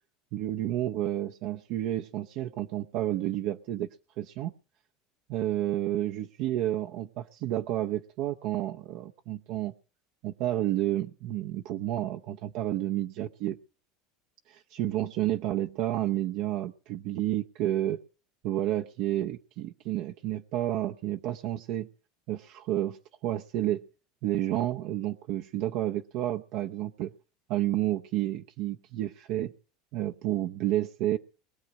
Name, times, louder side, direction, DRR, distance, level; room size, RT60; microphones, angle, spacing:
voice 1, 0.3-3.9 4.2-4.5 5.3-9.7 10.2-13.6 14.5-18.0 18.4-21.9 22.3-23.8 24.2-27.1 27.5-29.5 29.9-31.2, right 13 dB, 65° right, 4 dB, 0.7 m, -30 dB
21.0 x 7.5 x 6.4 m, 0.40 s
supercardioid pair, 105°, 0 cm